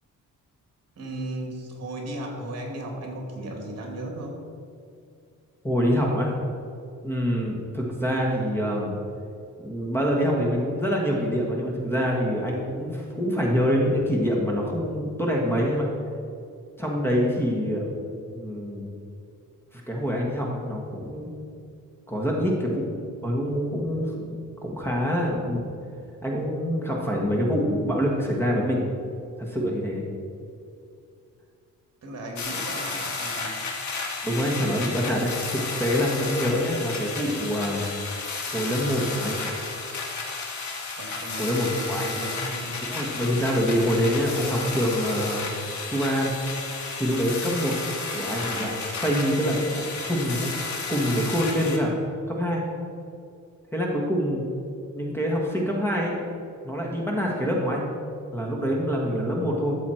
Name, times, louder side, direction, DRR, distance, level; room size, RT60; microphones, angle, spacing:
voice 1, 1.0-4.4 32.0-33.6 41.0-43.0, right 1 dB, 55° right, 1 dB, 2.5 m, -36 dB
voice 2, 5.6-6.4 7.0-9.0 9.6-15.9 16.8-17.9 18.3-18.9 19.7-21.3 22.1-25.7 26.2-28.9 29.4-30.0 34.2-37.9 38.5-39.4 41.4-42.2 42.9-45.5 45.8-46.3 46.9-47.8 48.1-50.5 50.9-52.0 52.3-52.6 53.7-54.4 54.9-56.2 56.6-57.9 58.3-59.8, equal, 5° left, -2 dB, 1.5 m, -25 dB
sound 1, 32.4-51.8, left 4 dB, 65° left, 1.8 m, -32 dB
13.5 x 7.2 x 4.5 m, 2.4 s
wide cardioid pair, 155°, 31 cm